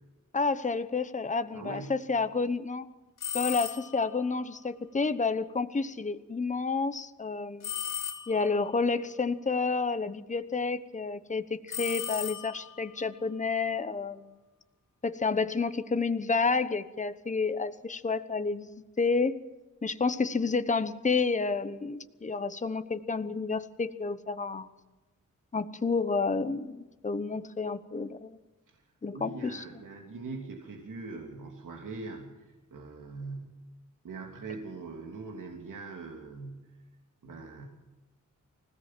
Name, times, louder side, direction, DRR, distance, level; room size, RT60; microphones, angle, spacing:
voice 1, 0.3-2.8 3.3-7.7 8.3-14.3 15.0-18.7 19.0-19.4 19.8-24.7 25.5-28.4 29.0-29.6, left 4 dB, 25° left, 11 dB, 1.0 m, -30 dB
voice 2, 1.5-2.0 28.7-28.8 29.1-33.6 34.0-36.7 37.2-37.7, right 3 dB, 80° right, 1 dB, 3.1 m, -42 dB
sound 1, 3.2-4.1 7.6-8.6 11.7-12.8, left 9 dB, 85° left, 2.9 m, -36 dB
25.0 x 17.0 x 7.6 m, 1.1 s
wide cardioid pair, 145°, 31 cm